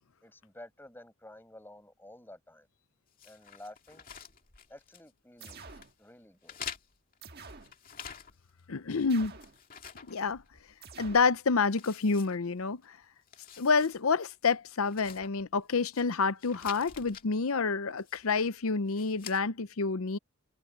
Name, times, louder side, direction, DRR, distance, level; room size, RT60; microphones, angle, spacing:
voice 1, 0.2-2.7 3.2-4.1 4.7-5.7 6.0-6.6, left 1 dB, 10° left, 6.8 m, -51 dB
sound 1, 3.2-5.1 5.4-5.9 6.4-8.6 8.9-10.8 11.2-11.3 11.7-12.9 13.2-14.0 14.3-14.4 14.8-16.0 16.4-17.3 18.0-18.4 18.9-19.4, left 8 dB, 40° left, 2.4 m, -48 dB
sound 2, 5.4-5.9 7.2-7.8 9.1-9.6 10.8-11.3, right 4 dB, 45° right, 1.6 m, -48 dB
voice 2, 8.7-9.4 10.1-10.4 11.0-13.0 13.6-20.2, left 4 dB, 75° left, 0.7 m, -28 dB
head